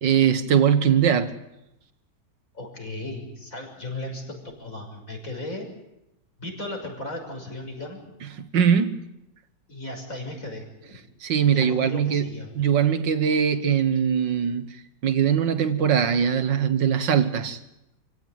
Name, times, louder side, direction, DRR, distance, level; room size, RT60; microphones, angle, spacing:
voice 1, 0.0-1.3 8.4-9.0 11.2-14.8 15.0-17.6, right 8 dB, 85° right, 2.1 m, -21 dB
voice 2, 2.5-5.7 6.4-8.1 9.7-11.0 11.5-12.5, left 1 dB, 45° left, 6.5 m, -36 dB
28.0 x 17.0 x 9.3 m
omnidirectional pair, 1.9 m